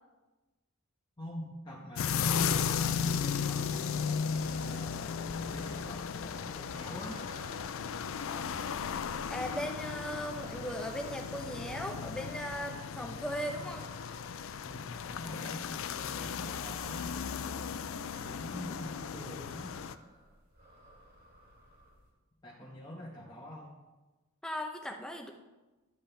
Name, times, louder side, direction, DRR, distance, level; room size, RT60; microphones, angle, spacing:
voice 1, 1.2-4.3 4.6-7.2 14.6-17.2 18.2-19.8 22.4-23.7, left 1 dB, 20° left, -5 dB, 1.1 m, -45 dB
sound 1, 2.0-20.0, left 6 dB, 65° left, 0.4 m, -35 dB
sound 2, 4.4-22.1, right 1 dB, 50° right, 2.6 m, -57 dB
voice 2, 9.3-13.8 24.4-25.3, equal, 5° left, 3 dB, 0.8 m, -38 dB
12.0 x 7.8 x 3.4 m, 1.2 s
head